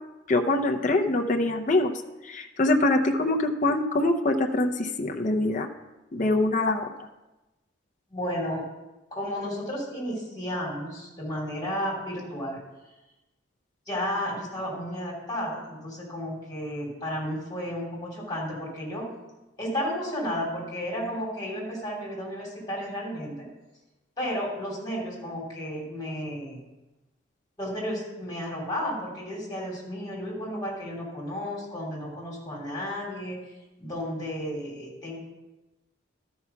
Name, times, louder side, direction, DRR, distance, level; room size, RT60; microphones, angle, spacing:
voice 1, 0.3-1.9 2.2-5.7 6.1-6.9, left 2 dB, 40° left, 3 dB, 0.6 m, -24 dB
voice 2, 8.1-8.7 9.1-12.6 13.9-19.1 19.6-23.4 24.2-26.6 27.6-33.4 33.8-35.2, equal, 20° left, -4 dB, 3.1 m, -33 dB
12.5 x 4.7 x 5.7 m, 1.0 s
head